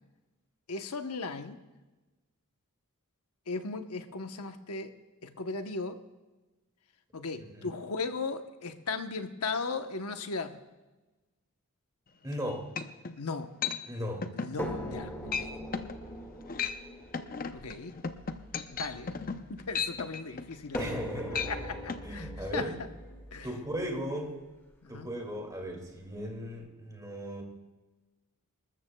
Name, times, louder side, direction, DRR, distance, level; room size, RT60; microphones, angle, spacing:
voice 1, 0.7-1.6 3.5-4.9 5.2-6.0 7.1-10.6 13.2-13.5 14.3-15.5 17.5-18.0 18.7-19.2 19.5-20.8 21.4-22.7 23.3-23.5 24.8-25.1, left 4 dB, 80° left, 7 dB, 1.0 m, -37 dB
voice 2, 7.4-7.8 12.2-12.7 13.8-14.3 20.7-21.5 22.0-22.8 23.4-24.4 24.9-27.4, equal, 15° right, 2 dB, 2.3 m, -37 dB
sound 1, 12.3-12.4 12.8-13.2 13.6-13.8 14.2-14.5 14.9-15.0 15.3-15.5 15.7-16.0 16.4-16.8 17.1-21.0 21.3-21.5 21.9-22.0, left 6 dB, 40° left, 0.7 m, -35 dB
sound 2, 14.6-19.8 20.7-24.7 25.7-25.8 26.2-26.3, equal, 10° left, 2.0 m, -41 dB
26.5 x 13.5 x 2.3 m, 1.2 s
head